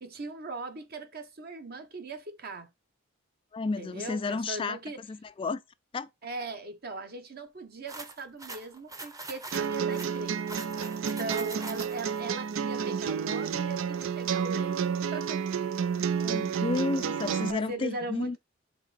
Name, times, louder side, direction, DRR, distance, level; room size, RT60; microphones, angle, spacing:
voice 1, 0.0-2.7 3.8-5.0 6.2-10.9 11.2-14.8 15.1-15.4 16.2-16.5 17.5-18.4, right 2 dB, 50° right, 1.1 m, -39 dB
voice 2, 3.5-5.6 5.9-6.1 16.1-18.4, left 3 dB, 25° left, 0.3 m, -32 dB
sound 1, 7.9-12.2, right 2 dB, 15° right, 0.8 m, -43 dB
sound 2, 9.5-17.5, right 7 dB, 85° right, 0.5 m, -30 dB
5.8 x 3.5 x 4.9 m
head